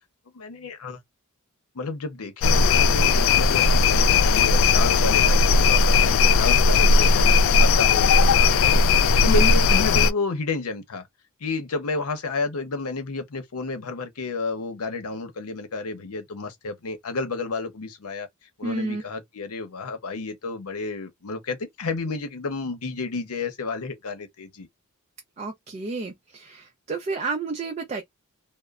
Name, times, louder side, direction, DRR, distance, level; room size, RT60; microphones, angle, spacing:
voice 1, 0.3-1.0 1.7-11.1 11.4-18.3 18.6-24.7, left 3 dB, 85° left, 0.8 m, -31 dB
sound 1, 2.4-10.1, left 4 dB, 60° left, 0.3 m, -18 dB
voice 2, 18.6-19.0 25.4-28.0, right 3 dB, 30° right, 0.4 m, -31 dB
3.0 x 2.1 x 2.3 m
head